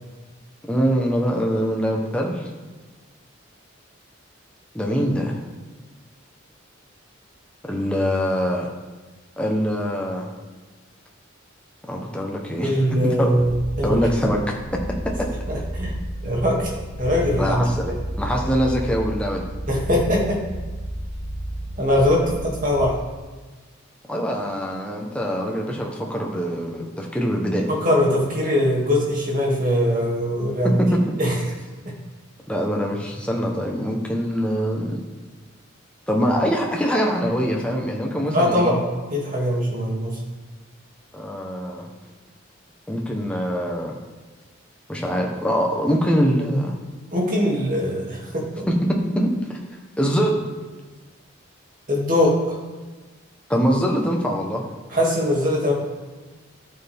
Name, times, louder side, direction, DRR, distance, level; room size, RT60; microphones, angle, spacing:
voice 1, 0.6-2.5 4.7-5.4 7.6-8.7 9.4-10.3 11.9-12.8 13.0-13.4 13.8-14.8 15.2-15.3 17.4-17.8 18.2-19.4 24.1-27.7 30.8-31.0 32.5-35.1 36.1-38.7 41.1-41.9 42.9-44.0 44.9-46.8 48.7-48.8 49.1-49.6 50.0-50.5 53.5-54.6, equal, 5° left, 0 dB, 1.0 m, -23 dB
voice 2, 12.6-14.0 15.5-15.9 16.2-16.7 17.0-17.9 19.7-20.4 21.8-22.9 27.7-30.7 31.2-31.3 38.3-40.2 47.1-48.6 51.9-52.6 54.9-55.7, left 1 dB, 40° right, -3 dB, 2.5 m, -21 dB
sound 1, 13.3-22.9, right 1 dB, 50° left, 1.0 m, -31 dB
13.5 x 6.9 x 3.6 m, 1.3 s
head